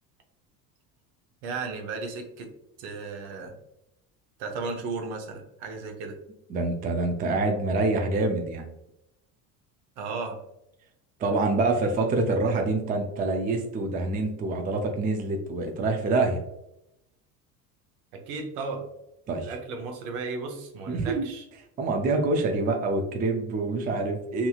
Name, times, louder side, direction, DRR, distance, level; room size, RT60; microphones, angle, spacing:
voice 1, 1.4-2.5 2.8-3.6 4.4-6.2 10.0-10.4 18.1-18.9 19.4-21.5, right 4 dB, 65° right, 3 dB, 0.9 m, -35 dB
voice 2, 6.5-8.7 11.2-16.4 19.3-19.5 20.9-21.3 21.8-24.5, right 2 dB, 20° right, 3 dB, 0.4 m, -26 dB
2.8 x 2.7 x 2.3 m, 0.84 s
hypercardioid pair, 85°, 43 cm